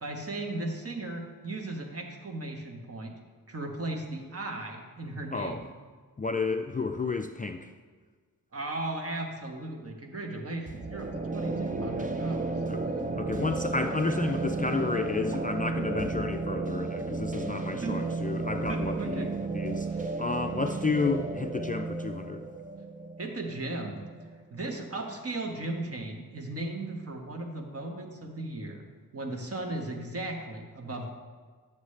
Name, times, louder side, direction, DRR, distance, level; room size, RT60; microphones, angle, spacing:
voice 1, 0.0-3.1 3.5-5.6 8.5-12.5 17.5-18.0 18.7-19.3 19.8-20.1 23.2-24.0 24.5-28.8 29.1-31.1, right 2 dB, 45° right, 2 dB, 1.3 m, -36 dB
voice 2, 5.3-5.6 6.2-7.7 12.7-12.8 13.1-19.3 19.5-19.9 20.2-22.4, left 4 dB, 25° left, 6 dB, 0.4 m, -31 dB
sound 1, 10.7-24.3, right 3 dB, 25° right, 0.6 m, -33 dB
11.0 x 7.2 x 3.2 m, 1.5 s
wide cardioid pair, 85°, 34 cm